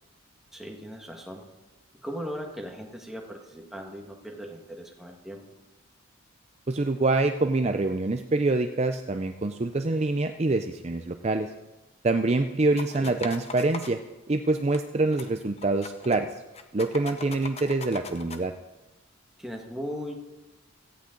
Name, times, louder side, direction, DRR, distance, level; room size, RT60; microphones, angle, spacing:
voice 1, 0.5-1.4 2.0-5.4 13.0-13.1 19.4-20.1, equal, ahead, 1 dB, 1.7 m, -38 dB
voice 2, 6.7-11.5 12.0-14.0 14.3-16.3 16.7-18.5, right 2 dB, 30° right, 7 dB, 0.5 m, -25 dB
sound 1, 12.8-13.9 14.7-14.8 15.1-15.3 15.6-16.2 16.5-18.4, left 4 dB, 30° left, 0.9 m, -40 dB
17.0 x 14.5 x 3.9 m, 1.1 s
head